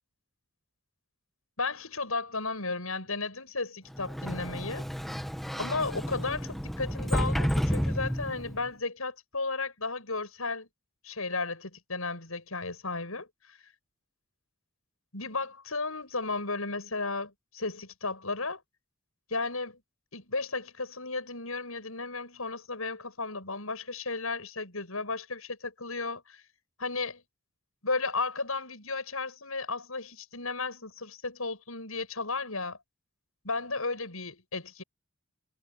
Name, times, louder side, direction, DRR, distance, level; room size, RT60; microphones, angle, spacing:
voice 1, 1.6-4.9 5.6-10.7 11.0-13.6 15.1-18.6 19.3-19.8 20.1-26.4 26.8-27.2 27.8-32.8 33.4-34.8, left 3 dB, 80° left, 7.3 m, -34 dB
Sliding door, 3.9-8.7, equal, ahead, 1.2 m, -31 dB
head